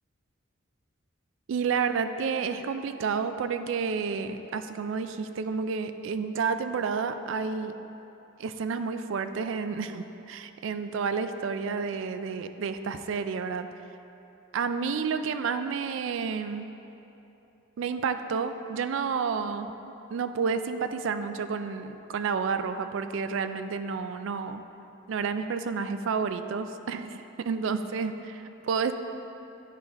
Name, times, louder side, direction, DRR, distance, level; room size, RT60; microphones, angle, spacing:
voice 1, 1.5-7.7 8.4-13.7 14.5-16.7 17.8-19.7 20.1-24.6 25.1-28.9, right 5 dB, 70° right, 10 dB, 0.3 m, -30 dB
10.0 x 4.9 x 3.1 m, 2.9 s
head